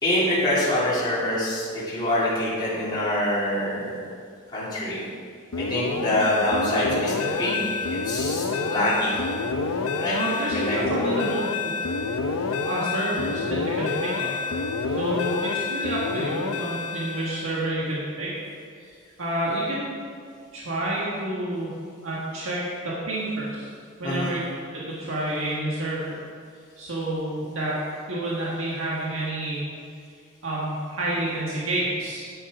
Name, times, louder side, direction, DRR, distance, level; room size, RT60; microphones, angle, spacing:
voice 1, 0.0-4.0 4.5-5.0 5.6-7.7 8.0-9.1 10.0-10.1 10.5-11.2 24.0-24.3, left 1 dB, 20° left, -9 dB, 2.7 m, -25 dB
sound 1, 5.5-17.7, left 4 dB, 90° left, 0.6 m, -28 dB
voice 2, 10.1-11.4 11.6-11.7 12.6-14.4 14.9-18.3 18.8-18.9 19.2-19.9 20.5-21.7 22.0-23.7 24.0-24.4 24.7-26.2 26.8-29.6 30.4-32.3, right 1 dB, 65° right, -6 dB, 1.7 m, -29 dB
8.9 x 8.6 x 4.8 m, 2.2 s
head